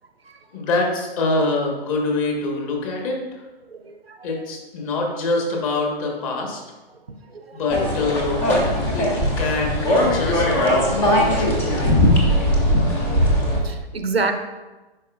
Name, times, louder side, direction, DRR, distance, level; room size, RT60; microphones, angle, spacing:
voice 1, 0.5-3.5 4.2-6.6 7.5-8.6 8.9-11.6, left 2 dB, 35° left, 0 dB, 1.4 m, -25 dB
voice 2, 3.7-4.2 7.3-7.4 13.6-14.3, right 4 dB, 85° right, 7 dB, 0.7 m, -26 dB
sound 1, 7.7-13.6, left 1 dB, 10° left, 0.3 m, -19 dB
10.5 x 4.4 x 2.4 m, 1.2 s
figure-of-eight pair, 120°, 30 cm